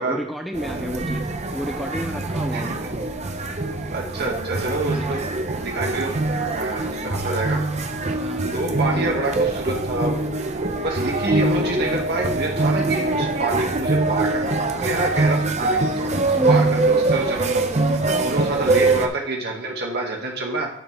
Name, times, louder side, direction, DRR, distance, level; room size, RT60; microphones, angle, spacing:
voice 1, 0.0-2.8 4.9-5.2 8.2-8.6 8.9-9.3 16.3-16.9, equal, ahead, 4 dB, 0.5 m, -32 dB
sound 1, 0.5-19.1, right 2 dB, 30° right, 0.9 m, -23 dB
voice 2, 3.9-5.2 5.6-7.9 8.5-10.2 10.8-16.1 16.5-17.6 18.2-20.7, right 2 dB, 50° right, 0 dB, 2.0 m, -27 dB
11.5 x 6.6 x 3.5 m, 0.66 s
head